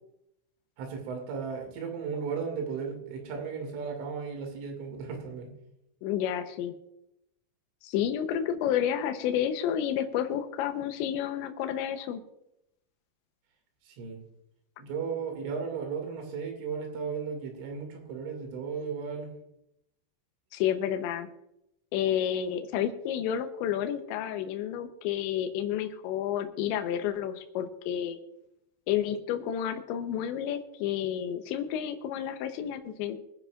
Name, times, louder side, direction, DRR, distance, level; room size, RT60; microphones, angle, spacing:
voice 1, 0.8-5.5 13.8-14.2 14.8-19.3, right 5 dB, 85° right, 2 dB, 4.8 m, -35 dB
voice 2, 6.0-6.7 7.8-12.2 20.5-21.3 21.9-28.2 28.9-33.2, left 10 dB, 75° left, 6 dB, 3.1 m, -30 dB
24.5 x 10.5 x 2.5 m, 0.82 s
omnidirectional pair, 5.4 m